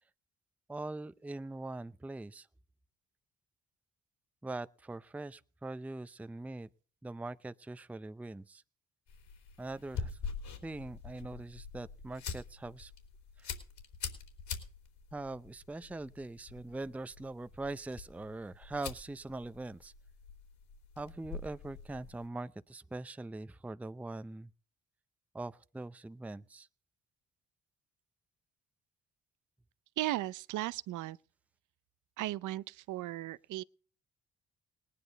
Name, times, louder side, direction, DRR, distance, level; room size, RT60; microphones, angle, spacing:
voice 1, 0.7-2.5 4.4-6.7 7.0-8.6 9.6-10.2 10.6-12.9 13.4-13.5 15.1-19.9 21.0-24.5 25.3-26.7, right 2 dB, 5° right, 0.5 m, -42 dB
sound 1, 9.1-22.3, left 5 dB, 75° left, 3.7 m, -45 dB
voice 2, 30.0-31.2 32.2-33.6, right 15 dB, 80° right, 0.6 m, -36 dB
19.0 x 10.0 x 4.0 m
cardioid pair, 90°, 30 cm